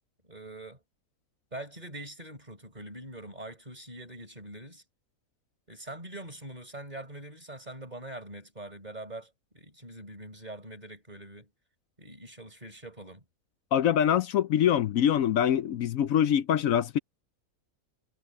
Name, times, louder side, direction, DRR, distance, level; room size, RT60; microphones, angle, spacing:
voice 1, 0.2-0.8 1.5-4.8 5.7-11.5 12.0-13.2, right 1 dB, 25° right, 4.4 m, -43 dB
voice 2, 13.7-17.0, left 9 dB, 70° left, 1.0 m, -24 dB
omnidirectional pair, 1.6 m